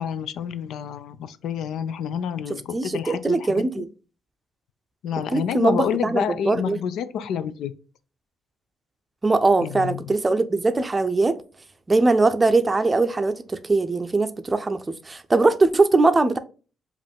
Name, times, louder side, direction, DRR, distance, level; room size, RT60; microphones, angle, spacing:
voice 1, 0.0-3.8 5.0-7.7 9.6-10.1, left 8 dB, 80° left, 0.4 m, -29 dB
voice 2, 2.7-3.9 5.3-6.8 9.2-11.4 11.9-16.4, right 3 dB, 25° right, 0.5 m, -21 dB
5.0 x 2.5 x 3.5 m
cardioid pair, 90°, 0 cm